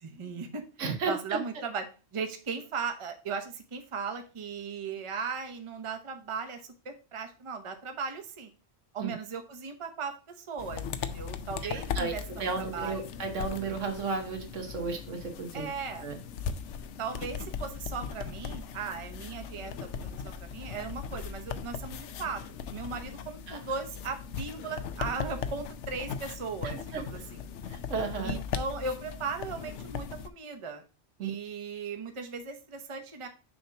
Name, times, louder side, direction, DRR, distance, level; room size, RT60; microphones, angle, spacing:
voice 1, 0.0-0.6 1.1-1.8 2.1-8.5 8.9-13.1 15.5-16.1 17.0-27.4 28.2-30.8 31.2-33.3, right 5 dB, 30° right, 6 dB, 0.8 m, -37 dB
voice 2, 0.8-1.4 9.0-9.1 11.9-12.1 12.4-15.7 16.0-16.2 23.5-23.6 26.9-27.0 27.7-28.4 31.2-31.3, right 4 dB, 85° right, 5 dB, 1.5 m, -33 dB
sound 1, 10.6-30.3, left 7 dB, 75° left, 0.9 m, -38 dB
6.4 x 2.9 x 5.6 m, 0.34 s
omnidirectional pair, 1.2 m